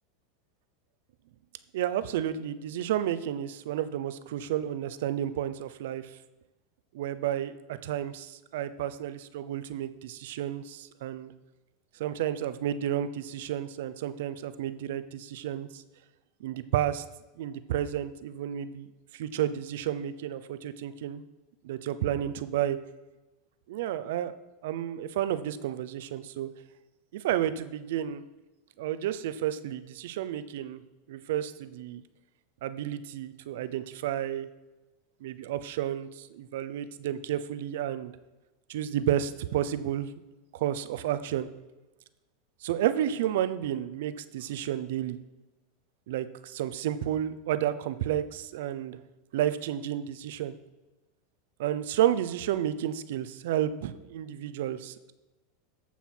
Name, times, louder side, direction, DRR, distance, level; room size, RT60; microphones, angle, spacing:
voice 1, 1.7-6.1 6.9-11.3 12.0-15.8 16.4-17.0 17.4-18.9 19.1-21.2 21.6-22.8 23.7-24.3 24.6-26.5 27.1-28.2 28.8-30.8 31.1-32.0 32.6-34.5 35.2-38.1 38.7-40.1 40.5-41.5 42.6-45.2 46.1-49.0 49.3-50.5 51.6-55.1, right 11 dB, 75° right, 13 dB, 0.7 m, -31 dB
14.5 x 5.7 x 4.5 m, 1.1 s
supercardioid pair, 120°, 0 cm